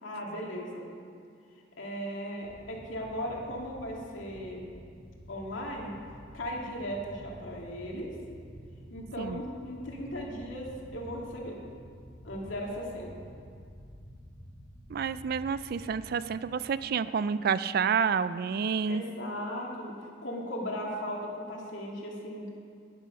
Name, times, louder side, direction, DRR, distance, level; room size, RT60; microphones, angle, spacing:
voice 1, 0.0-0.9 1.8-4.7 5.3-5.9 6.3-8.1 8.9-11.6 12.2-13.1 18.9-19.9 20.2-22.5, equal, 85° left, -2 dB, 2.3 m, -37 dB
sound 1, 2.4-16.6, equal, 55° left, 2.6 m, -50 dB
voice 2, 14.9-19.0, right 6 dB, 50° right, 15 dB, 0.3 m, -29 dB
11.5 x 10.0 x 5.3 m, 2.3 s
head